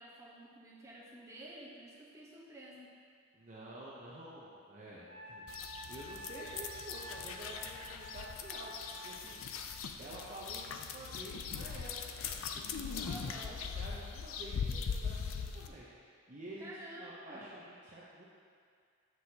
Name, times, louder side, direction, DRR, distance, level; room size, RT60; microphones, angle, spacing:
voice 1, 0.0-2.9 13.1-13.6 16.6-17.5, right 1 dB, 15° right, -6 dB, 1.0 m, -50 dB
voice 2, 3.3-5.5 5.9-9.4 10.0-11.9 12.2-13.2 13.5-15.9 16.3-18.2, right 1 dB, 40° right, -7 dB, 0.7 m, -50 dB
Wind instrument woodwind instrument, 5.1-9.3, right 1 dB, 50° left, 1.3 m, -50 dB
sound 1, 5.5-15.7, left 6 dB, 80° left, 0.4 m, -41 dB
7.9 x 6.1 x 2.9 m, 2.2 s
head